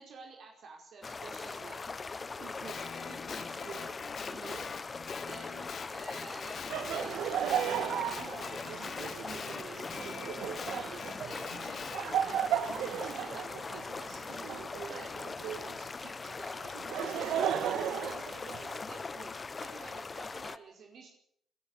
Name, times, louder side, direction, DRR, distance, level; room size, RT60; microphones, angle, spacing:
voice 1, 0.0-3.9 4.2-4.7 5.1-12.4 12.6-21.1, right 5 dB, 60° right, 1 dB, 5.1 m, -50 dB
sound 1, 1.0-20.6, left 4 dB, 30° left, 1.0 m, -41 dB
Guitar, 2.7-7.1 7.5-12.0, left 7 dB, 55° left, 2.0 m, -45 dB
Laughter, 6.7-15.8 16.6-19.0, right 9 dB, 80° right, 1.7 m, -35 dB
26.0 x 12.5 x 8.5 m, 0.69 s
cardioid pair, 90°, 0 cm